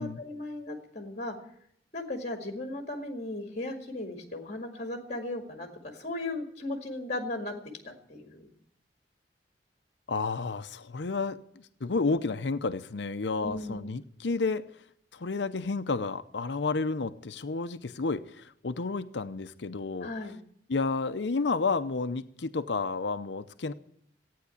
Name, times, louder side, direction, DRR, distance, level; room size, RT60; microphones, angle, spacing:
voice 1, 0.0-1.4 1.9-7.5 7.8-8.5 13.3-13.8 20.0-20.4, left 2 dB, 40° left, 4 dB, 2.0 m, -36 dB
voice 2, 10.1-14.7 15.1-20.1 20.7-23.7, left 4 dB, 75° left, 12 dB, 0.7 m, -31 dB
15.5 x 9.3 x 8.4 m, 0.68 s
head